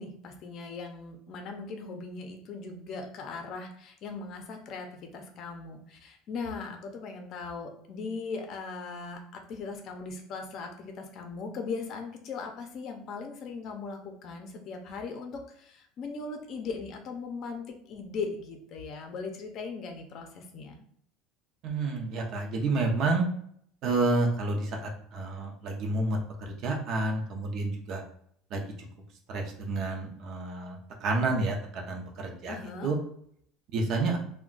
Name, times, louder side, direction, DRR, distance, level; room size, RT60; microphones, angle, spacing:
voice 1, 0.0-4.9 5.1-9.2 9.5-20.8 32.5-32.9, left 4 dB, 45° left, 4 dB, 0.6 m, -39 dB
voice 2, 21.6-23.2 23.8-28.0 28.5-28.6 29.3-32.6 32.8-33.0 33.7-34.2, right 3 dB, 50° right, 1 dB, 0.6 m, -29 dB
2.4 x 2.2 x 3.7 m, 0.65 s
cardioid pair, 140°, 0 cm